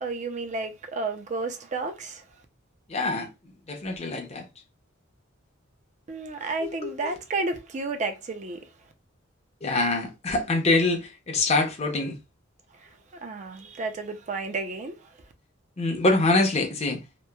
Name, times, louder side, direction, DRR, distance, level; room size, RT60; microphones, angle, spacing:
voice 1, 0.0-2.2 6.1-8.6 12.8-12.9 13.2-15.0, right 3 dB, 35° right, 0.4 m, -31 dB
voice 2, 2.9-4.5 6.6-7.1 9.6-12.2 15.8-17.0, left 2 dB, 35° left, 0.6 m, -25 dB
2.9 x 2.0 x 2.2 m
head